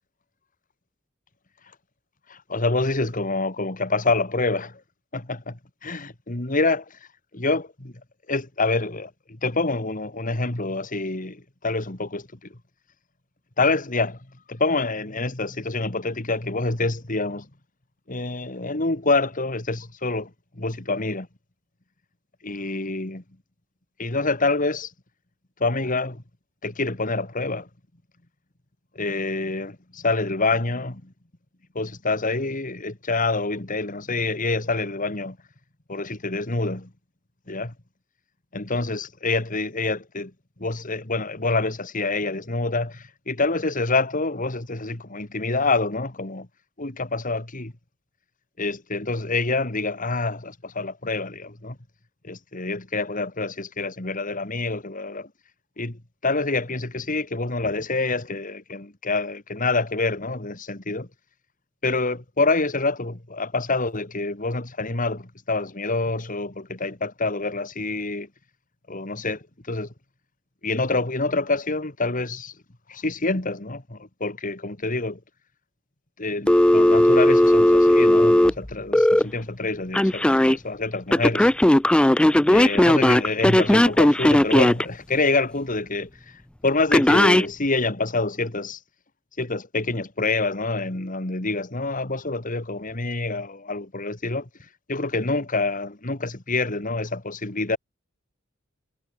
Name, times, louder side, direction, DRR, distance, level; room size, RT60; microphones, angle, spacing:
voice 1, 2.3-4.8 5.1-6.8 7.3-7.9 8.3-12.3 13.6-14.2 14.5-17.5 18.1-20.3 20.6-21.3 22.4-23.2 24.0-24.9 25.6-26.2 26.6-27.7 29.0-31.1 31.7-35.4 35.9-36.9 37.5-37.7 38.5-40.3 40.6-46.5 46.8-47.7 48.6-51.8 52.2-55.3 55.8-61.1 61.8-68.3 68.9-69.9 70.6-72.5 72.9-75.2 76.2-81.5 82.4-86.1 86.6-88.8 89.4-94.5 94.9-97.8, left 3 dB, 40° left, 2.3 m, -26 dB
Telephone, 76.5-79.2 79.9-80.6 81.1-84.8 86.9-87.5, left 1 dB, 5° left, 0.3 m, -17 dB
head